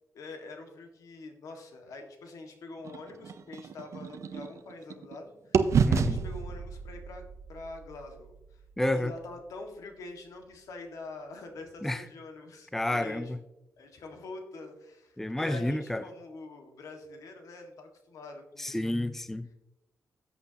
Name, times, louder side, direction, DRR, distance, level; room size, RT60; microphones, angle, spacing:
voice 1, 0.1-8.6 8.9-13.3 13.8-18.9, left 3 dB, 80° left, 1.8 m, -45 dB
sound 1, 2.8-5.2 5.5-9.5, right 5 dB, 60° right, 0.6 m, -31 dB
voice 2, 5.8-6.2 8.8-9.1 11.8-12.0 12.7-13.4 15.2-16.0 18.6-19.5, left 1 dB, 5° left, 0.4 m, -30 dB
13.5 x 8.2 x 2.9 m
wide cardioid pair, 125°, 6 cm